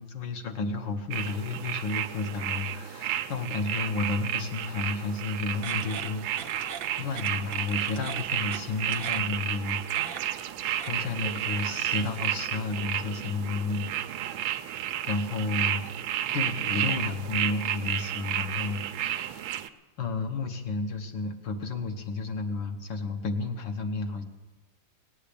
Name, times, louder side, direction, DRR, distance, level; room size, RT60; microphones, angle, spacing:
voice 1, 0.0-10.4 10.6-14.3 15.1-15.8 16.3-19.5 20.0-24.2, left 4 dB, 70° left, 4 dB, 1.9 m, -32 dB
sound 1, 1.1-19.7, right 11 dB, 85° right, 1.4 m, -32 dB
sound 2, 5.5-12.5, right 8 dB, 65° right, 0.7 m, -43 dB
18.5 x 8.3 x 8.5 m, 1.3 s
omnidirectional pair, 2.1 m